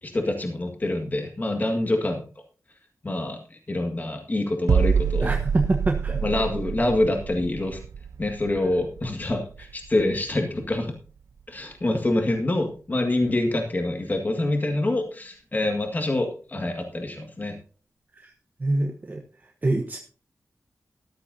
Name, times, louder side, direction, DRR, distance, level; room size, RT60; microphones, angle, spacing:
voice 1, 0.0-2.2 3.0-5.3 6.1-7.8 8.2-10.9 11.5-17.6, left 2 dB, 35° left, 3 dB, 1.9 m, -26 dB
sound 1, 4.7-10.4 10.6-10.9, right 6 dB, 75° right, 0.4 m, -27 dB
voice 2, 5.2-6.2 18.2-18.3 18.6-19.2 19.6-20.0, right 2 dB, 35° right, 3 dB, 1.1 m, -25 dB
13.5 x 13.0 x 2.7 m, 0.39 s
wide cardioid pair, 110°, 5 cm